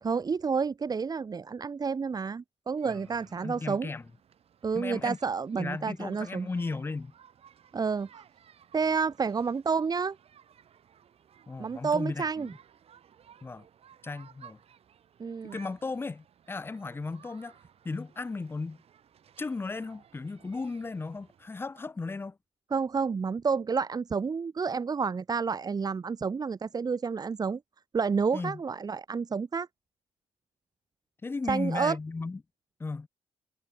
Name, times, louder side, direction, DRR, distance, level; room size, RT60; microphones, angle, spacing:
voice 1, 0.0-3.9 4.6-6.5 7.7-8.2 8.7-10.2 11.6-12.5 15.2-15.6 22.7-27.6 27.9-29.7 31.5-32.0, right 5 dB, 35° right, 0.9 m, -30 dB
sound 1, 2.8-21.6, right 8 dB, 60° right, 2.5 m, -58 dB
voice 2, 3.4-4.0 4.7-5.2 5.6-7.1 11.5-12.5 13.4-13.6 14.0-14.6 15.4-17.6 17.8-18.8 19.4-22.4 28.3-28.6 31.2-32.4 32.8-33.1, left 3 dB, 20° left, 0.5 m, -35 dB
supercardioid pair, 70°, 12 cm